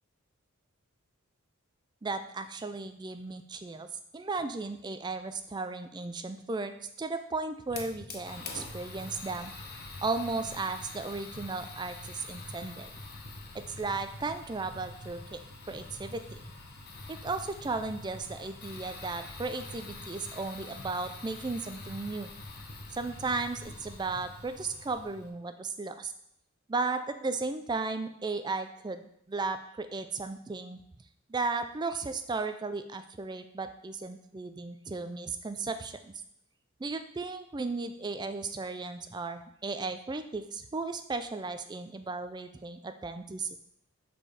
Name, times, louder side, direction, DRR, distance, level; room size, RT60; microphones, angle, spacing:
voice 1, 2.0-3.9 4.1-6.7 7.0-9.5 10.0-12.9 13.5-15.4 15.7-16.4 17.1-22.3 22.9-26.1 26.7-29.0 29.3-30.8 31.3-36.1 36.8-43.6, right 3 dB, 20° right, 9 dB, 0.3 m, -35 dB
Fire, 7.7-25.3, left 2 dB, 45° left, 0.8 m, -45 dB
5.4 x 4.4 x 4.8 m, 0.74 s
head